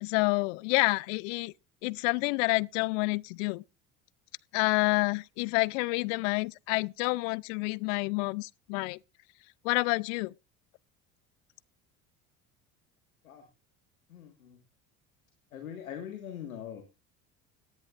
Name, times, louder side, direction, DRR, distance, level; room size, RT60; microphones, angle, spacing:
voice 1, 0.0-1.5 1.8-3.6 4.5-9.0 9.6-10.3, left 26 dB, 65° left, 0.5 m, -28 dB
voice 2, 14.1-14.6 15.5-16.8, left 9 dB, 85° left, 1.8 m, -42 dB
18.0 x 10.5 x 2.5 m
hypercardioid pair, 70°, 41 cm